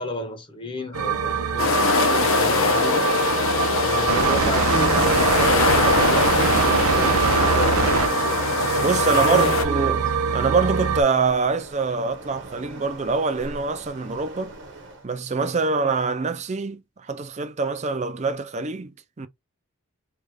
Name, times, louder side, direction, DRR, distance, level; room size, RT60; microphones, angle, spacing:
voice 1, 0.0-3.1 3.8-8.1 9.1-10.0, left 1 dB, 25° left, 0.7 m, -32 dB
sound 1, 0.9-11.0, right 6 dB, 90° right, 0.7 m, -23 dB
sound 2, 1.6-9.7, left 3 dB, 70° left, 0.8 m, -22 dB
voice 2, 8.8-14.5 15.0-16.8 17.1-19.3, right 4 dB, 30° right, 0.4 m, -24 dB
Waves surf, 11.1-15.1, right 2 dB, 55° right, 1.2 m, -42 dB
3.3 x 2.4 x 3.3 m
head